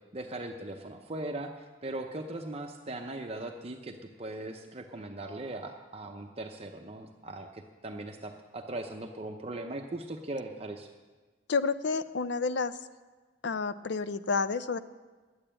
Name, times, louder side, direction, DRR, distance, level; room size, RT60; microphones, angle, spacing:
voice 1, 0.1-10.9, right 2 dB, 30° right, 3 dB, 0.7 m, -39 dB
voice 2, 11.5-12.7 13.4-14.8, left 4 dB, 65° left, 13 dB, 0.5 m, -30 dB
11.0 x 8.9 x 8.8 m, 1.3 s
head